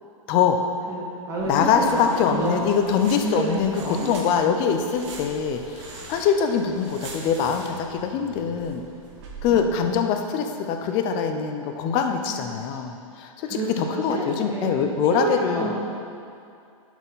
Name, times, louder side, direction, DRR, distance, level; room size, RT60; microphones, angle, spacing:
voice 1, 0.3-0.6 1.5-8.8 9.4-15.7, left 7 dB, 25° left, 5 dB, 0.5 m, -23 dB
voice 2, 0.9-4.1 9.5-9.6 13.5-15.8, right 2 dB, 15° right, -6 dB, 1.6 m, -29 dB
sound 1, 1.4-9.9, right 3 dB, 55° right, 1.5 m, -43 dB
11.0 x 4.4 x 4.0 m, 2.5 s
hypercardioid pair, 150°, 18 cm